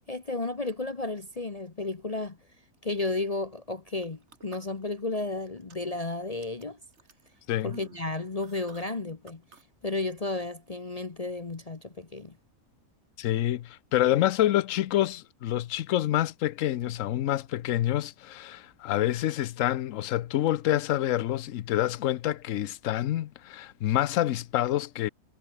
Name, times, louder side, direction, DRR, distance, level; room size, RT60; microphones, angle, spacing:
voice 1, 0.1-2.4 2.8-6.8 7.6-9.4 9.8-12.4, left 2 dB, 30° left, 1.1 m, -33 dB
sound 1, 4.0-5.2 5.6-6.0 6.4-9.6 9.9-10.0, right 4 dB, 50° right, 2.4 m, -51 dB
voice 2, 13.2-25.1, left 13 dB, 70° left, 1.0 m, -27 dB
omnidirectional pair, 1.5 m